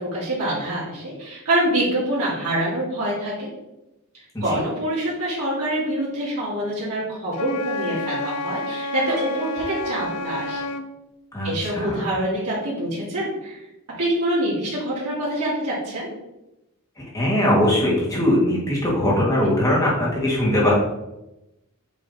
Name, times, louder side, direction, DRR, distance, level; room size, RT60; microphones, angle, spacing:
voice 1, 0.0-3.5 4.4-10.7 11.4-13.6 14.0-16.1, right 1 dB, 85° right, -8 dB, 2.1 m, -25 dB
Wind instrument woodwind instrument, 7.3-10.9, left 2 dB, 85° left, 0.5 m, -30 dB
sound 1, 8.7-10.7, right 1 dB, 45° right, 1.4 m, -39 dB
voice 2, 11.3-12.1 17.0-20.7, left 1 dB, 15° left, -5 dB, 2.0 m, -21 dB
7.4 x 3.4 x 4.1 m, 0.93 s
head